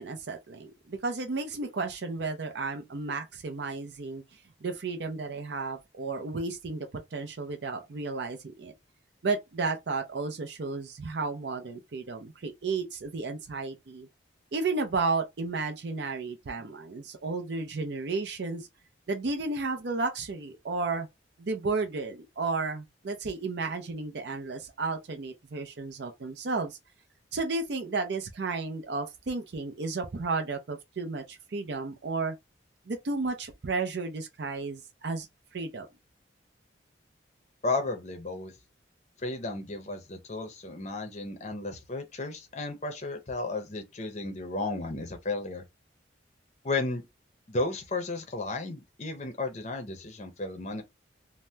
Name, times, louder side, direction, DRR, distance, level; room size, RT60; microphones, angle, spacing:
voice 1, 0.0-4.2 4.6-8.7 9.2-14.1 14.5-18.7 19.1-21.1 21.4-26.8 27.3-32.3 32.9-35.3 35.5-35.9, right 3 dB, 60° right, 0.5 m, -33 dB
voice 2, 37.6-38.5 39.2-45.6 46.6-47.0 47.5-50.8, left 3 dB, 35° left, 0.6 m, -33 dB
2.7 x 2.1 x 3.3 m
head